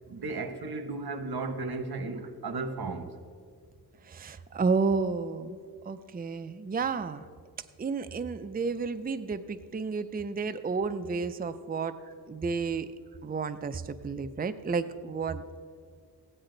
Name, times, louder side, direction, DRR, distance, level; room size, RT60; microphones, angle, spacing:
voice 1, 0.1-3.2, right 3 dB, 85° right, 8 dB, 1.0 m, -35 dB
voice 2, 4.0-5.6 5.8-7.3 7.8-12.0 12.3-12.9 13.2-15.4, right 4 dB, 25° right, 11 dB, 0.4 m, -31 dB
15.5 x 9.9 x 3.9 m, 2.1 s
wide cardioid pair, 80°, 37 cm